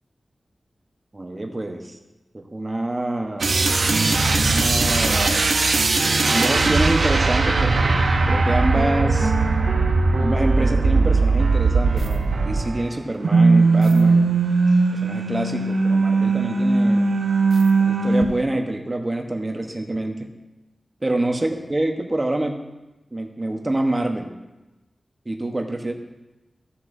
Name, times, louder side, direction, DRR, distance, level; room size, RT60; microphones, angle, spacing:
voice 1, 1.1-2.0 2.3-3.5 4.3-5.4 6.3-9.3 10.2-14.3 14.9-17.1 17.8-20.3 21.0-22.6 23.1-24.3 25.2-25.9, right 1 dB, 30° right, 3 dB, 1.0 m, -26 dB
sound 1, 3.4-12.9 13.2-18.2, right 3 dB, 75° right, 0.7 m, -19 dB
14.0 x 6.4 x 2.7 m, 1.1 s
wide cardioid pair, 90°, 0 cm